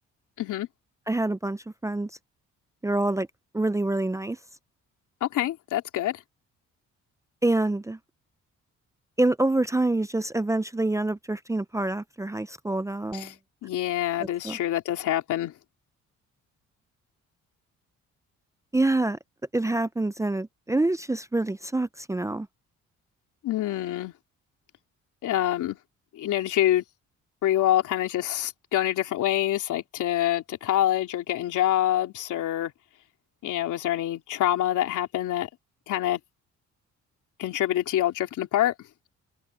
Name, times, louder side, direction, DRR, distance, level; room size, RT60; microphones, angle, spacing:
voice 1, 1.1-2.1 2.8-3.3 3.5-4.4 7.4-8.0 9.2-13.3 14.4-14.6 18.7-19.2 19.5-22.5, right 2 dB, 10° right, 0.6 m, -26 dB
voice 2, 5.2-6.2 13.1-13.3 13.6-15.5 23.4-24.1 25.2-25.8 26.1-26.8 27.4-32.7 33.4-35.5 35.9-36.2 37.4-38.7, left 12 dB, 80° left, 3.4 m, -26 dB
open air
cardioid pair, 90°, 30 cm